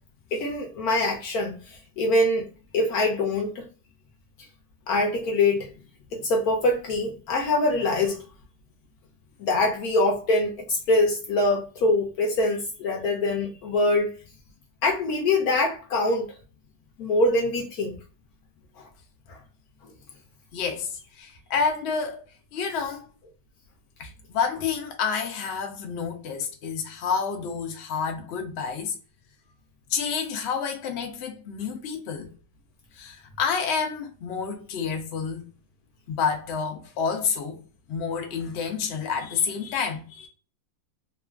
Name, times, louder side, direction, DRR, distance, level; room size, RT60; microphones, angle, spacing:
voice 1, 0.3-2.5 2.7-3.7 4.9-5.7 6.1-8.2 9.4-14.1 14.8-16.3 17.0-17.9 18.8-18.9 19.3-19.4 22.7-22.8, left 2 dB, 70° left, 0.9 m, -24 dB
voice 2, 20.5-23.1 24.0-29.0 29.9-32.3 32.9-35.5 36.1-37.6 37.9-40.3, left 6 dB, 90° left, 0.5 m, -29 dB
2.9 x 2.4 x 2.3 m
omnidirectional pair, 2.0 m